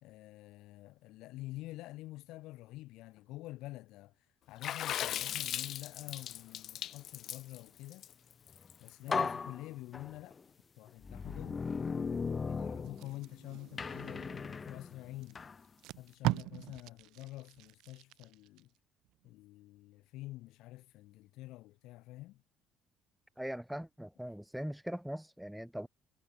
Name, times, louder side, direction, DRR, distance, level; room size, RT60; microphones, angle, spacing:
voice 1, 0.0-4.1 4.5-8.1 8.8-10.4 10.8-11.6 12.4-15.5 16.0-18.7 19.2-22.4, left 18 dB, 80° left, 3.2 m, -48 dB
Water / Splash splatter, 4.6-9.1, left 11 dB, 55° left, 1.5 m, -38 dB
sound 1, 8.5-8.7 9.1-10.4 11.0-13.4 13.8-15.6, left 5 dB, 25° left, 0.5 m, -37 dB
Packing tape duct tape, 12.8-14.5 15.2-15.3 15.6-18.6 19.0-19.3, right 18 dB, 80° right, 1.2 m, -40 dB
voice 2, 23.4-25.9, equal, ahead, 3.0 m, -40 dB
cardioid pair, 135°, 0 cm